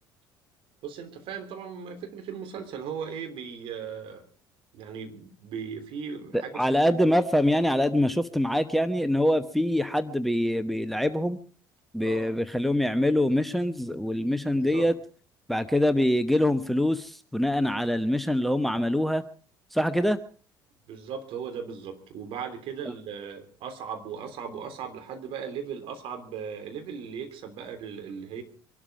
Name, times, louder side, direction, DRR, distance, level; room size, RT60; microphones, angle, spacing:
voice 1, 0.8-4.2 4.7-7.2 12.0-12.3 14.5-14.9 20.9-28.4, right 7 dB, 55° right, 5 dB, 3.4 m, -38 dB
voice 2, 6.3-11.4 11.9-14.9 15.5-19.2 19.7-20.2, left 1 dB, ahead, 11 dB, 1.0 m, -24 dB
24.5 x 12.5 x 4.8 m, 0.41 s
figure-of-eight pair, 55°, 11 cm